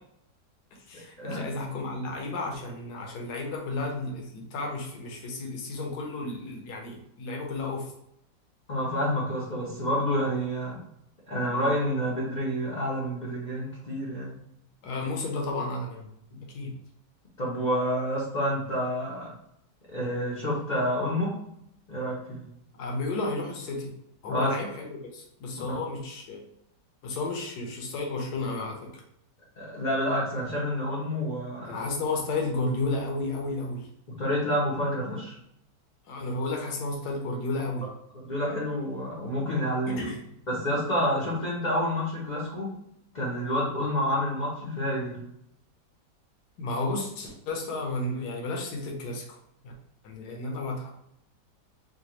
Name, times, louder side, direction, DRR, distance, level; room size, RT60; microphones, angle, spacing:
voice 1, 0.9-7.9 14.8-16.1 16.5-16.7 22.8-23.9 24.2-26.4 27.0-29.0 31.7-33.9 36.1-37.9 39.9-40.2 46.6-49.2 49.6-49.7 50.0-50.9, left 2 dB, 70° left, 1 dB, 1.4 m, -32 dB
voice 2, 8.7-10.8 11.3-14.4 16.3-16.4 17.4-19.3 19.9-21.3 21.9-22.4 24.3-24.6 25.7-25.8 29.6-31.7 34.1-35.3 38.1-40.0 40.5-42.7 43.1-45.2, equal, 40° left, -6 dB, 0.6 m, -28 dB
5.0 x 2.4 x 3.0 m, 0.76 s
omnidirectional pair, 1.9 m